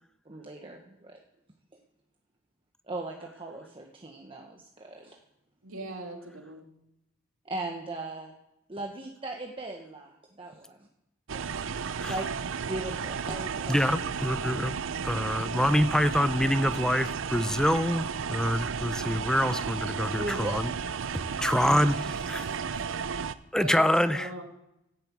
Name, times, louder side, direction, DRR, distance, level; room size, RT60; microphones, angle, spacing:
voice 1, 0.2-1.2 2.9-5.2 7.4-8.4 8.7-10.9 11.7-12.3 12.7-13.9 15.2-15.3 20.2-20.6, right 2 dB, 25° right, 1 dB, 1.0 m, -38 dB
voice 2, 5.6-6.6 23.6-24.4, right 2 dB, 85° right, 1 dB, 2.8 m, -40 dB
sound 1, 11.3-23.3, right 6 dB, 65° right, 0.5 m, -33 dB
voice 3, 13.7-14.8 15.0-20.7 21.1-22.5 23.5-24.3, equal, 5° left, 12 dB, 0.5 m, -26 dB
14.5 x 7.5 x 8.5 m, 0.89 s
head